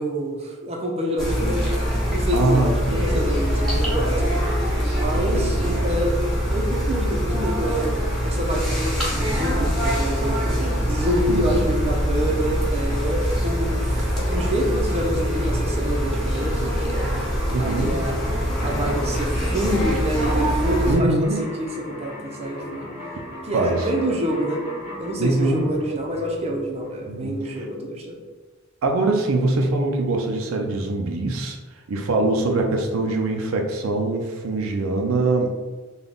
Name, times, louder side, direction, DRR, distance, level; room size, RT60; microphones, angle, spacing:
voice 1, 0.0-1.7 2.1-4.3 5.0-6.2 6.5-8.0 8.2-13.8 14.3-17.1 17.6-18.2 18.6-22.8 23.4-24.6 24.9-28.2, equal, 30° right, 0 dB, 0.5 m, -27 dB
sound 1, 1.2-21.0, equal, ahead, 1.1 m, -23 dB
voice 2, 2.3-3.2 5.1-5.9 11.3-11.7 17.5-18.0 20.9-21.4 23.5-23.8 25.2-25.7 27.1-27.6 28.8-31.6 31.9-35.5, right 2 dB, 80° right, 3 dB, 0.5 m, -23 dB
sound 2, 17.2-27.4, left 1 dB, 30° left, 1.1 m, -37 dB
3.4 x 2.2 x 3.8 m, 1.3 s
head